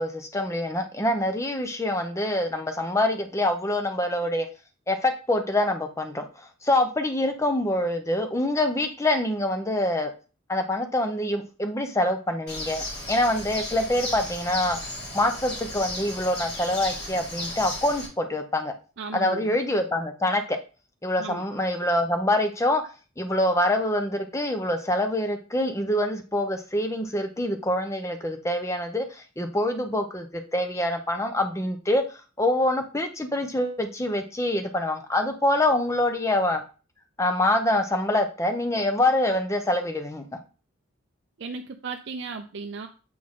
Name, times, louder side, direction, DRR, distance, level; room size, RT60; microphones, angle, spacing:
voice 1, 0.0-4.5 4.9-10.1 10.5-14.8 15.1-18.7 19.1-20.6 21.0-22.8 23.2-32.0 32.4-36.6 37.2-40.2, left 1 dB, 15° left, 6 dB, 0.7 m, -25 dB
Bird, 12.5-18.1, left 1 dB, 55° left, 2.5 m, -35 dB
voice 2, 19.0-19.5 21.2-21.5 41.4-42.9, right 4 dB, 60° right, 5 dB, 0.4 m, -35 dB
7.6 x 4.2 x 3.7 m, 0.35 s
head